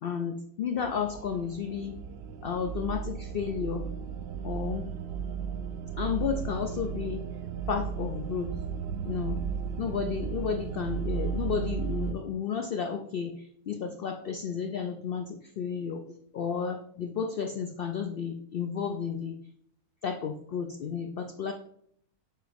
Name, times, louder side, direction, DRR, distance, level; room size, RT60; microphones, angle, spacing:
voice 1, 0.0-2.0 2.4-3.9 4.4-4.9 6.0-7.3 7.7-8.5 9.0-9.5 9.8-19.4 20.0-21.5, left 6 dB, 90° left, 5 dB, 0.5 m, -32 dB
sound 1, 0.8-12.1, right 7 dB, 70° right, 0.6 m, -35 dB
7.0 x 3.0 x 5.0 m, 0.66 s
omnidirectional pair, 1.6 m